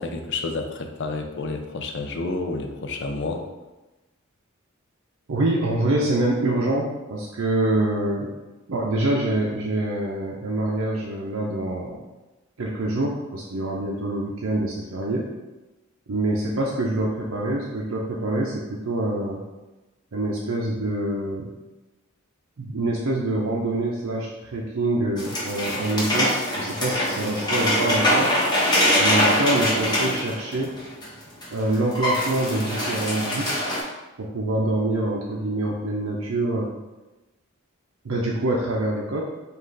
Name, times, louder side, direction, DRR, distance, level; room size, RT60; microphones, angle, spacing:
voice 1, 0.0-3.5, left 3 dB, 60° left, 4 dB, 0.5 m, -30 dB
voice 2, 5.3-8.3 8.7-12.0 12.6-15.3 16.1-19.4 20.1-21.5 22.6-28.3 29.0-30.7 31.5-33.5 34.2-36.7 38.0-39.2, right 2 dB, 70° right, -3 dB, 0.6 m, -25 dB
sound 1, 25.2-31.1 31.4-31.5 31.7-33.8, left 1 dB, 20° left, 1.1 m, -23 dB
5.3 x 2.4 x 3.8 m, 1.1 s
head